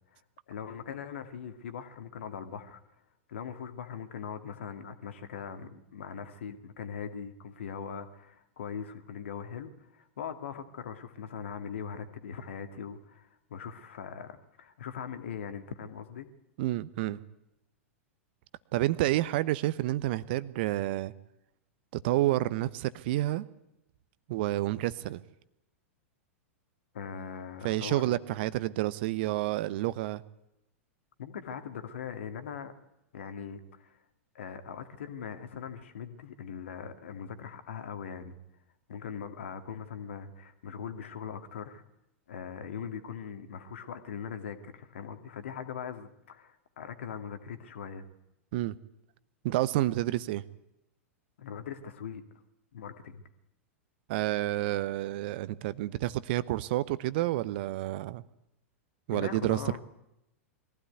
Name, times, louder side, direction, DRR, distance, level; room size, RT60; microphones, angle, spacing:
voice 1, 0.5-2.8 3.3-16.3 26.9-28.2 31.2-32.7 33.1-34.0 34.3-38.4 38.9-41.8 42.3-48.1 51.4-52.2 52.7-53.2 59.1-59.8, left 7 dB, 60° left, 8 dB, 2.2 m, -41 dB
voice 2, 16.6-17.2 18.7-21.1 21.9-23.4 24.3-25.2 27.6-30.2 48.5-48.7 49.4-50.4 54.1-58.2 59.1-59.6, right 16 dB, 45° right, 17 dB, 0.9 m, -29 dB
22.0 x 16.0 x 9.4 m, 0.87 s
figure-of-eight pair, 95°, 7 cm